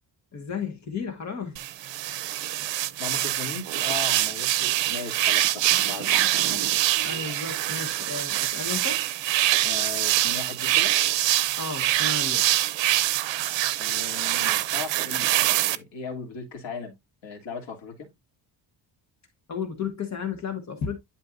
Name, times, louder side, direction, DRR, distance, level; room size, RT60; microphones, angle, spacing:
voice 1, 0.3-1.6 2.6-2.7 7.0-9.0 11.6-12.5 19.5-21.0, left 5 dB, 40° left, 1.3 m, -33 dB
sound 1, 1.6-15.8, right 14 dB, 75° right, 0.7 m, -24 dB
voice 2, 3.0-6.7 9.4-11.0 13.8-17.0 17.2-18.1, left 5 dB, 90° left, 2.9 m, -38 dB
11.0 x 4.4 x 2.5 m
cardioid pair, 175°, 45 cm